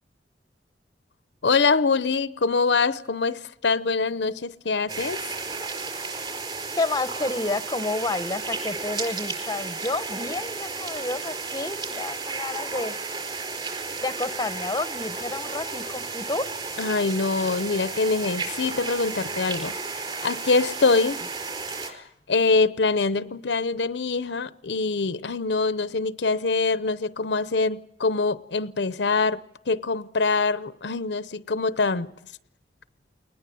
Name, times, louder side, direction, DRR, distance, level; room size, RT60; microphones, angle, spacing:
voice 1, 1.4-5.2 16.8-19.7 20.2-21.2 22.3-32.1, left 4 dB, 85° left, 0.7 m, -24 dB
sound 1, 4.9-21.9, right 4 dB, 30° right, 4.6 m, -33 dB
voice 2, 6.7-12.9 14.0-16.5, left 2 dB, 20° left, 0.8 m, -30 dB
21.5 x 20.0 x 7.7 m
head